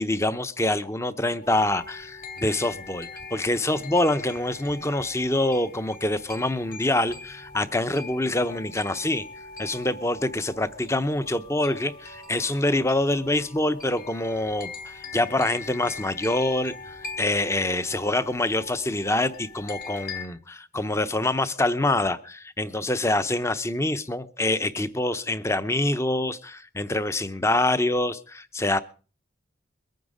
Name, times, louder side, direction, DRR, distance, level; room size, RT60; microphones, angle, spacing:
voice 1, 0.0-9.2 9.6-28.8, left 1 dB, 15° left, 0.7 m, -25 dB
sound 1, 1.4-20.3, left 4 dB, 45° left, 2.7 m, -42 dB
22.5 x 9.4 x 5.0 m
head